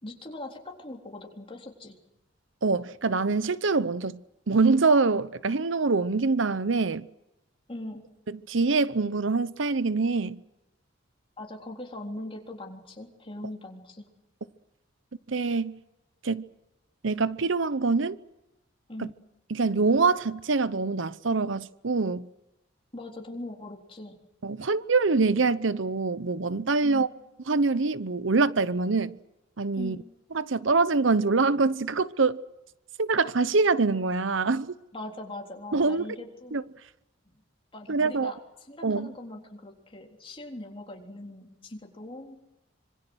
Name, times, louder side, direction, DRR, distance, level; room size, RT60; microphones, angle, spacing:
voice 1, 0.0-2.0 7.7-8.0 11.4-14.0 18.9-19.1 22.9-24.2 26.8-27.1 29.8-30.0 34.9-36.6 37.7-38.4 38.7-42.4, left 1 dB, 30° left, 3.7 m, -40 dB
voice 2, 2.6-4.2 4.5-7.1 8.3-10.4 15.3-15.8 16.2-16.5 17.0-18.2 19.0-19.1 19.5-22.3 24.4-27.1 27.5-29.2 29.6-30.0 30.3-32.4 33.0-34.7 35.7-36.0 36.5-36.6 37.9-38.3 38.8-39.1, right 4 dB, 70° right, 0.8 m, -25 dB
26.0 x 24.0 x 6.3 m
head